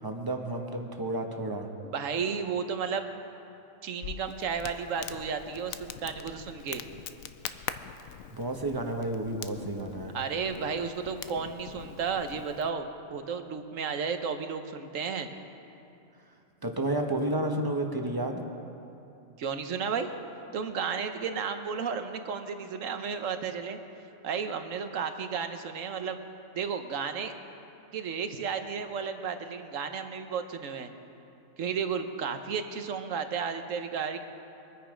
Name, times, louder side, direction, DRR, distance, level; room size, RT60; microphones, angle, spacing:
voice 1, 0.0-1.7 8.3-10.1 16.6-18.4, right 1 dB, 20° right, 3 dB, 1.1 m, -31 dB
voice 2, 1.8-3.0 3.8-6.8 10.1-15.3 19.4-20.1 20.5-23.8 24.2-26.2 26.5-27.3 27.9-30.9 31.6-34.2, right 6 dB, 70° right, 8 dB, 1.3 m, -33 dB
Crackle, 4.0-12.7, left 9 dB, 90° left, 1.0 m, -43 dB
23.5 x 9.5 x 5.0 m, 2.8 s
omnidirectional pair, 1.4 m